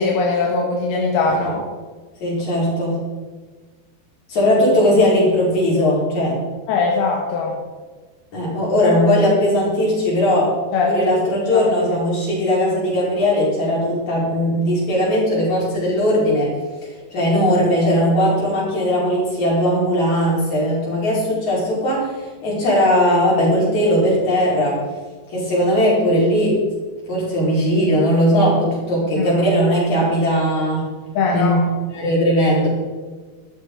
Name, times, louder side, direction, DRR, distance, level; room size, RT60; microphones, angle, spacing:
voice 1, 0.0-1.6 6.7-7.6 10.7-10.9 11.5-11.7 29.2-29.4 31.2-31.6, left 4 dB, 80° left, -1 dB, 3.5 m, -20 dB
voice 2, 2.2-3.0 4.3-6.4 8.3-10.5 10.8-16.5 17.1-24.8 25.3-26.6 27.1-30.9 31.3-31.6 31.9-32.7, equal, 45° left, -6 dB, 6.4 m, -18 dB
13.0 x 12.5 x 4.9 m, 1.4 s
omnidirectional pair, 4.4 m